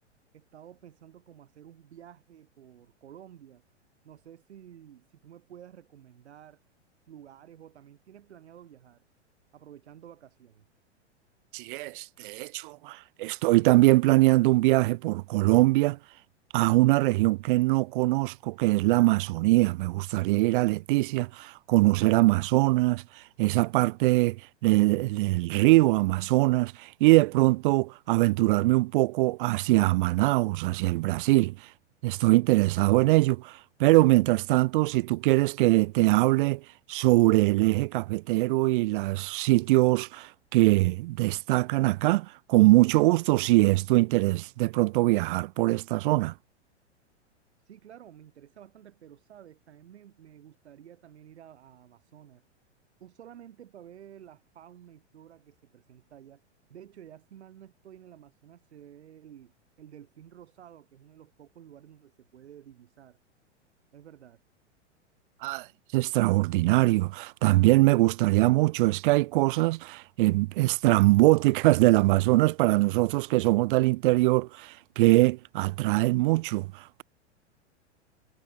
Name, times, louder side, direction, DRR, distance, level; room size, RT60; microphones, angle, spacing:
voice 1, 0.3-3.6 4.0-6.6 7.1-9.0 9.5-10.7 47.7-52.4 53.0-56.4 56.7-63.2 63.9-64.4, right 10 dB, 65° right, 7.4 m, -51 dB
voice 2, 11.5-16.0 16.5-23.0 23.4-31.6 32.0-36.6 36.9-46.3 65.4-65.7 65.9-76.7, right 20 dB, 45° right, 0.8 m, -22 dB
figure-of-eight pair, 100°, 35 cm